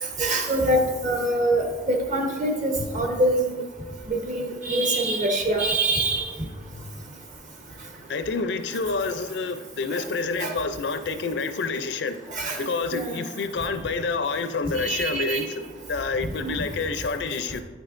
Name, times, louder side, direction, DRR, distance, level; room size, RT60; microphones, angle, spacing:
voice 1, 0.2-3.6 4.1-6.3 10.4-10.5 12.3-12.6 12.9-13.2 14.8-15.5 16.4-16.6, right 1 dB, 45° right, 3 dB, 1.0 m, -24 dB
voice 2, 8.1-12.2 12.6-17.6, left 4 dB, 70° left, 9 dB, 0.5 m, -28 dB
9.2 x 6.2 x 2.6 m, 1.4 s
head